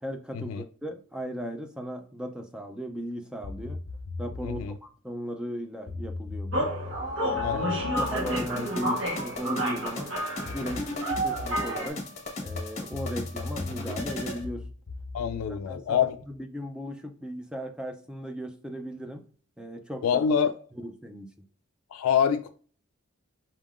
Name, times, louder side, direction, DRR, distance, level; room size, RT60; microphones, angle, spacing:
voice 1, 0.0-3.8 4.2-6.7 7.2-7.6 8.0-10.1 10.4-10.9 11.2-12.0 12.4-14.7 15.6-19.2 19.6-20.1 20.7-21.5, equal, 5° right, 0.3 m, -37 dB
sound 1, 3.4-4.7 5.9-9.6 10.5-11.7 12.5-16.4, left 3 dB, 50° left, 0.8 m, -39 dB
voice 2, 4.4-4.7 7.4-7.8 15.1-16.2 20.0-20.5 21.9-22.5, left 7 dB, 85° left, 0.3 m, -25 dB
sound 2, 6.5-11.9, equal, 60° right, 1.2 m, -30 dB
sound 3, 8.0-14.4, left 2 dB, 30° left, 1.2 m, -37 dB
5.4 x 3.6 x 2.4 m
head